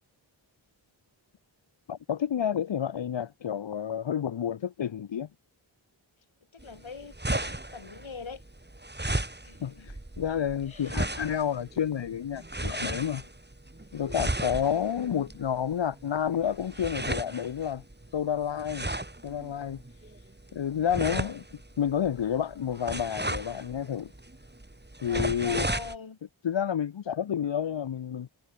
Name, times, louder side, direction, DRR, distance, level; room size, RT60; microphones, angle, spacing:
voice 1, 1.9-5.3 9.6-13.3 13.9-17.8 18.1-18.9 19.2-19.8 20.5-21.4 21.8-24.1 25.0-25.7 26.4-28.3, left 9 dB, 70° left, 0.7 m, -30 dB
voice 2, 6.6-8.4 9.4-9.9 10.6-11.0 14.6-15.3 25.1-26.2, left 5 dB, 85° left, 3.3 m, -43 dB
sound 1, 6.6-26.0, right 1 dB, 20° right, 3.6 m, -35 dB
wide cardioid pair, 45°, 46 cm